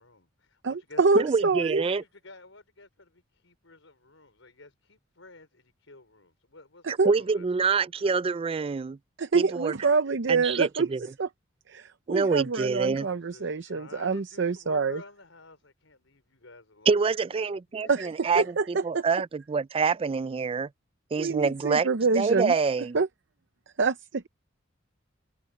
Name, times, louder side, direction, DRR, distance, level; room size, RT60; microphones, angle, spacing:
voice 1, 0.0-7.4 7.8-7.9 12.9-18.1, left 2 dB, 85° left, 5.0 m, -51 dB
voice 2, 0.6-1.8 6.8-7.1 9.2-10.9 11.2-11.3 11.7-15.0 17.9-18.1 18.3-19.0 21.2-22.5 22.9-23.1 23.8-24.3, right 4 dB, 65° right, 0.7 m, -26 dB
voice 3, 1.1-2.0 6.9-9.0 9.3-9.7 10.3-11.0 12.1-13.1 16.9-18.4 18.8-20.7 21.1-21.9 22.2-23.0, right 5 dB, 30° right, 0.3 m, -26 dB
head